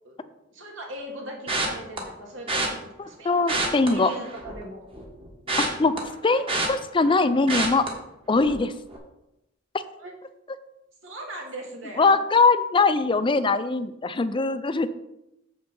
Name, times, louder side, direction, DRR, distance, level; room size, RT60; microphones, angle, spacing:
voice 1, 0.0-2.8 3.1-4.9 10.0-10.1 11.0-12.2, right 1 dB, 80° right, 0 dB, 2.3 m, -39 dB
sound 1, 1.5-2.0 2.5-2.7 3.4-4.6 4.9-7.2 7.5-7.9 8.4-8.6 8.9-9.0, right 2 dB, 30° right, 1.5 m, -28 dB
voice 2, 3.2-4.1 5.6-7.9 8.3-8.7 12.0-14.9, left 3 dB, 25° left, 12 dB, 0.4 m, -22 dB
7.1 x 6.3 x 5.4 m, 0.89 s
head